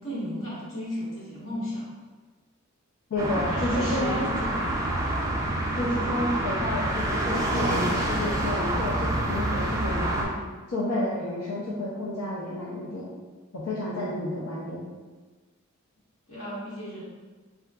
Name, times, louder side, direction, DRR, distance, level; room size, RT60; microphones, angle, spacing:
voice 1, 0.0-1.8 3.5-4.9 16.3-17.0, equal, 70° left, -8 dB, 1.2 m, -35 dB
voice 2, 3.1-4.3 5.7-10.4 10.7-13.1 13.5-14.8, left 1 dB, 85° left, -7 dB, 0.5 m, -30 dB
sound 1, 3.2-10.2, right 1 dB, 15° right, 0.3 m, -27 dB
3.7 x 2.3 x 2.2 m, 1.3 s
head